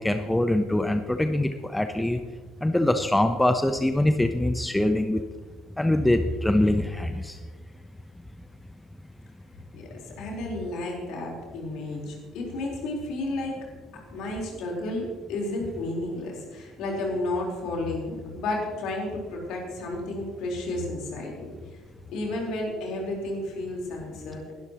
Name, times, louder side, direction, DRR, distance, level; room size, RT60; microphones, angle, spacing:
voice 1, 0.0-2.2 2.6-5.2 5.8-7.4, left 1 dB, 10° left, 8 dB, 0.8 m, -23 dB
voice 2, 9.7-13.6 14.1-21.6 22.1-24.5, left 2 dB, 60° left, -1 dB, 4.2 m, -32 dB
20.0 x 12.5 x 3.1 m, 1.5 s
figure-of-eight pair, 55°, 0 cm